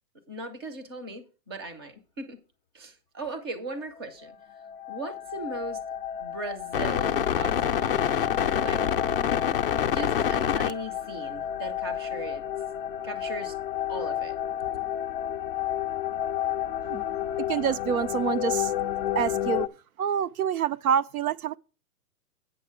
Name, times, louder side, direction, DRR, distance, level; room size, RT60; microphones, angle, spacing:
voice 1, 0.3-2.4 2.7-4.3 4.9-5.8 6.2-8.9 9.8-12.4 13.0-13.6 13.9-14.4, right 2 dB, 15° right, 0.5 m, -38 dB
sound 1, 4.3-4.4 4.6-19.7, left 10 dB, 40° left, 0.4 m, -29 dB
voice 2, 17.5-18.7 19.1-19.7 20.0-21.6, right 8 dB, 65° right, 0.6 m, -27 dB
8.9 x 6.5 x 5.0 m
hypercardioid pair, 170°, 47 cm